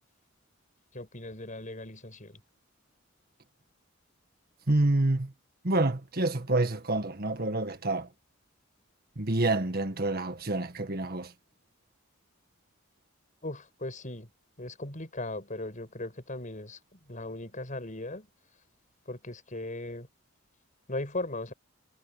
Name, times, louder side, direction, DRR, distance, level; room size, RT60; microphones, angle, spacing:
voice 1, 0.9-2.4 13.4-14.3 14.6-18.3 19.1-20.1 20.9-21.5, left 2 dB, 40° left, 6.1 m, -38 dB
voice 2, 4.7-5.3 5.6-8.1 9.2-11.3, right 2 dB, 50° right, 1.8 m, -27 dB
head